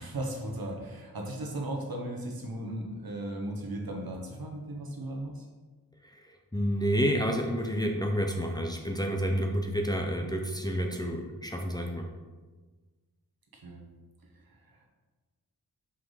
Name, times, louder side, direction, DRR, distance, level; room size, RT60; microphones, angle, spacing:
voice 1, 0.0-5.5 13.5-13.8 14.2-14.8, right 1 dB, 65° right, 0 dB, 1.3 m, -37 dB
voice 2, 6.0-12.1, equal, 10° left, 1 dB, 0.7 m, -29 dB
5.8 x 5.0 x 4.0 m, 1.3 s
wide cardioid pair, 85°, 38 cm